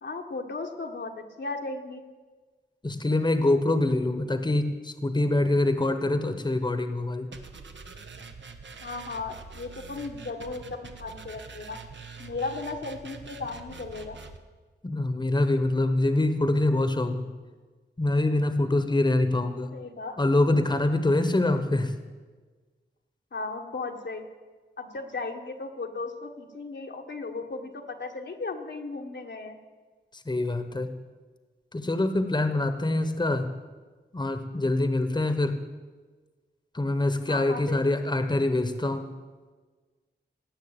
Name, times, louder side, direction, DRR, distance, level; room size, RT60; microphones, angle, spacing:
voice 1, 0.0-2.0 8.8-11.8 12.2-14.2 19.4-20.2 23.3-24.2 24.8-29.6 37.3-37.8, left 3 dB, 75° left, 2 dB, 1.4 m, -36 dB
voice 2, 2.8-7.3 14.8-17.3 18.0-19.7 20.2-21.9 30.1-31.0 31.7-33.5 34.1-35.6 36.7-39.1, left 2 dB, 25° left, 9 dB, 1.1 m, -25 dB
sound 1, 7.3-14.4, right 4 dB, 80° right, 1.1 m, -44 dB
17.5 x 6.7 x 8.8 m, 1.4 s
wide cardioid pair, 60°, 19 cm